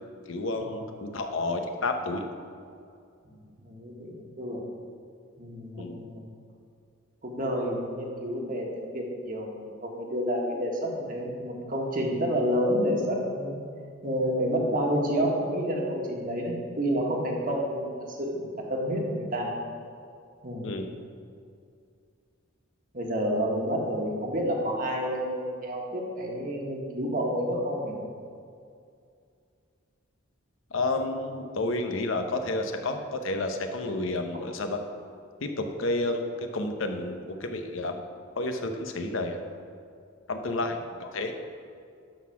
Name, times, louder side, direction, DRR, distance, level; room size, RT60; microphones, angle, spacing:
voice 1, 0.3-2.2 5.8-6.0 20.6-20.9 30.7-34.8 35.4-38.0 38.4-39.4 40.3-41.3, left 2 dB, 70° left, 5 dB, 0.8 m, -30 dB
voice 2, 3.6-4.6 5.4-6.2 7.2-13.6 14.0-19.5 20.4-20.7 22.9-27.9 40.4-40.5, equal, 40° right, -1 dB, 1.4 m, -29 dB
12.0 x 4.2 x 5.8 m, 2.4 s
head